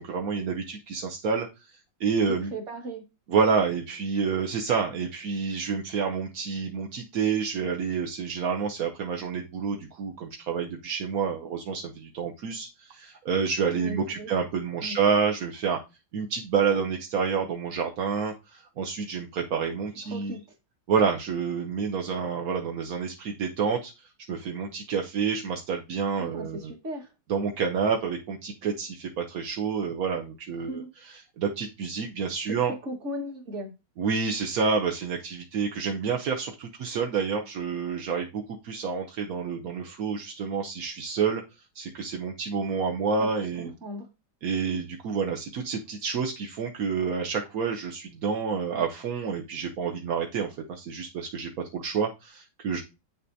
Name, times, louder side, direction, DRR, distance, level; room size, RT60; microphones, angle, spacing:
voice 1, 0.0-1.7 2.0-2.5 3.3-15.8 16.1-20.3 20.9-26.6 27.3-30.8 31.4-32.7 34.0-41.4 41.7-43.7 44.4-52.8, right 5 dB, 60° right, 1.0 m, -28 dB
voice 2, 2.3-3.0 13.7-14.3 14.8-15.0 20.1-20.4 26.2-27.1 30.6-30.9 32.5-33.7 43.2-43.3 43.6-44.1, right 1 dB, 40° right, 1.8 m, -37 dB
8.6 x 6.7 x 2.7 m
omnidirectional pair, 2.2 m